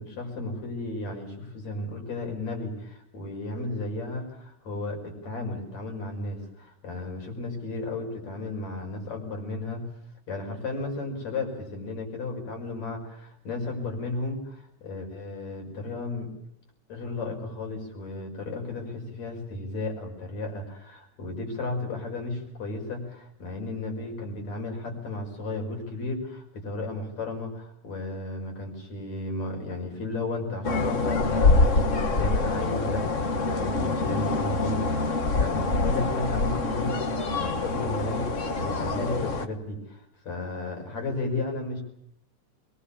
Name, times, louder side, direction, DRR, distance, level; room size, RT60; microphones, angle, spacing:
voice 1, 0.0-9.9 10.3-16.3 16.9-37.0 37.4-41.8, left 2 dB, 65° left, 3 dB, 6.9 m, -34 dB
sound 1, 30.6-39.5, left 3 dB, 40° left, 1.1 m, -25 dB
23.0 x 22.5 x 8.6 m, 0.75 s
omnidirectional pair, 3.4 m